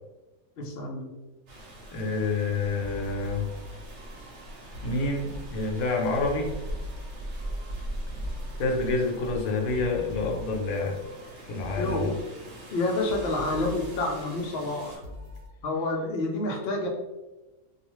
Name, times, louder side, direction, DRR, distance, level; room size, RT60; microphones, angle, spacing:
voice 1, 0.6-1.1 11.8-12.1 12.7-15.0 15.6-16.9, left 2 dB, 65° left, 0 dB, 0.6 m, -28 dB
Rain, 1.5-15.0, right 1 dB, 60° right, 0.9 m, -41 dB
voice 2, 1.9-3.5 4.8-6.5 8.6-11.0 11.4-12.1, left 3 dB, 80° left, 0 dB, 1.0 m, -28 dB
sound 1, 2.7-15.5, left 2 dB, 80° right, 1.1 m, -44 dB
2.4 x 2.3 x 3.0 m, 1.1 s
omnidirectional pair, 1.5 m